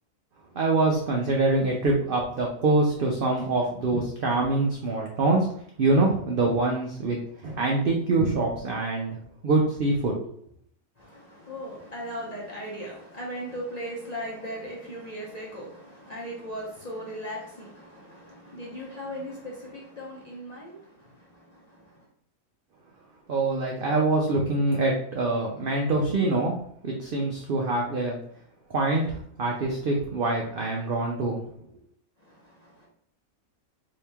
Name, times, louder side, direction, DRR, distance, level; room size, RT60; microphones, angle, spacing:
voice 1, 0.5-5.5 5.8-9.2 9.4-10.1 23.3-26.5 26.8-28.2 28.7-31.4, right 2 dB, 70° right, 0.5 m, -25 dB
voice 2, 11.0-22.1 32.2-32.9, equal, 40° left, 0.6 m, -38 dB
2.8 x 2.8 x 3.4 m
omnidirectional pair, 1.5 m